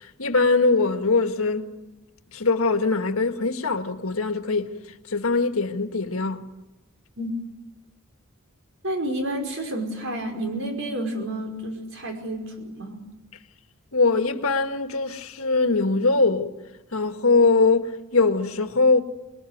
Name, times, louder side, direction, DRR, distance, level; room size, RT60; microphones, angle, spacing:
voice 1, 0.2-1.7 2.3-4.7 5.1-6.4 13.9-16.5 16.9-19.0, left 3 dB, 75° left, 1.7 m, -22 dB
voice 2, 8.8-13.1, right 1 dB, 65° right, 5.3 m, -30 dB
26.5 x 20.5 x 9.4 m
head